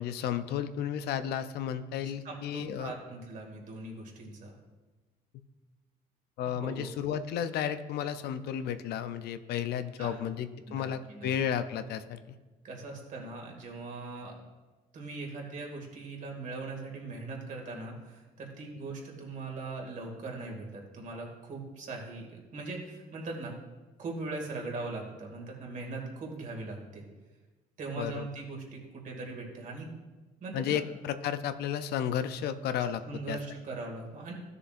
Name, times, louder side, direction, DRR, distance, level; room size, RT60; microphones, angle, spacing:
voice 1, 0.0-2.9 6.4-12.4 28.0-28.3 30.5-33.0 33.3-33.4, left 9 dB, 70° left, 11 dB, 0.5 m, -33 dB
voice 2, 2.2-4.6 6.5-6.9 10.0-10.2 10.7-11.3 12.6-14.4 14.9-23.6 24.0-27.1 27.8-29.9 30.4-30.8 33.0-34.3, right 3 dB, 50° right, 0 dB, 2.3 m, -40 dB
13.5 x 6.7 x 2.6 m, 1.2 s
cardioid pair, 110°, 17 cm